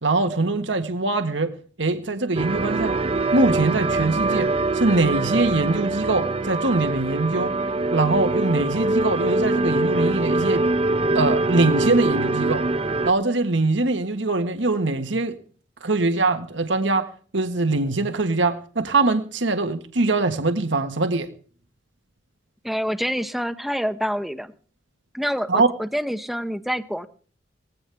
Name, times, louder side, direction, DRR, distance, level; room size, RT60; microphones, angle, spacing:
voice 1, 0.0-1.5 1.8-3.0 3.3-7.6 7.9-10.7 11.1-12.7 13.0-15.4 15.8-21.3 25.5-25.7, right 2 dB, 80° right, 1.6 m, -22 dB
sound 1, 2.4-13.1, right 2 dB, 30° right, 0.8 m, -23 dB
voice 2, 22.6-24.5 25.1-27.1, equal, ahead, 0.9 m, -27 dB
19.5 x 16.5 x 3.5 m
head